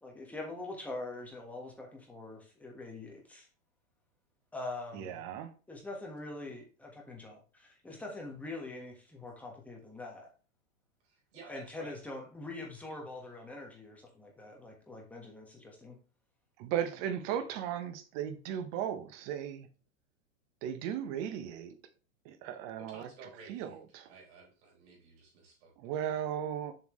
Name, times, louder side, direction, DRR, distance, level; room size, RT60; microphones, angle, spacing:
voice 1, 0.0-3.5 4.5-5.2 5.7-10.3 11.5-16.0, left 2 dB, 5° left, 1.4 m, -44 dB
voice 2, 4.9-5.5 16.6-19.7 20.6-21.8 22.2-23.1 23.5-24.1 25.8-26.7, right 9 dB, 30° right, 0.8 m, -36 dB
voice 3, 11.0-11.9 22.8-23.8 24.1-25.7, right 4 dB, 45° right, 4.1 m, -53 dB
7.3 x 5.9 x 3.1 m
supercardioid pair, 155°, 41 cm